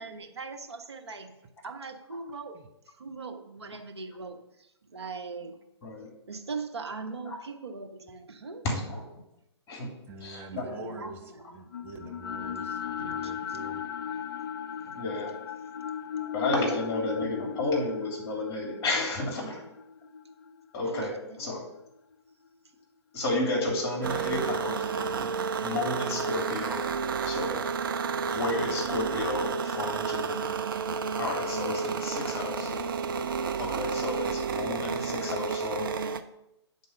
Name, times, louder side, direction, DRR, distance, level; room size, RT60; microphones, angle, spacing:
voice 1, 0.0-1.4 1.6-5.6 6.3-8.6 10.3-11.6 12.6-13.6 14.8-14.9 20.8-21.4, right 4 dB, 65° right, 1.1 m, -41 dB
voice 2, 8.6-9.1 9.7-9.9 10.2-10.8 14.9-15.3 16.3-19.6 20.7-21.1 21.4-21.6 23.1-25.3 25.6-27.6 28.3-30.6 31.2-32.7 33.6-35.9, left 2 dB, 20° left, 2.9 m, -32 dB
voice 3, 10.1-11.2 11.5-13.8, right 2 dB, 15° right, 0.8 m, -44 dB
sound 1, 11.7-21.9, left 8 dB, 55° left, 0.4 m, -37 dB
sound 2, 24.0-36.2, right 5 dB, 50° right, 0.6 m, -31 dB
9.1 x 4.1 x 6.2 m
figure-of-eight pair, 120°, 15 cm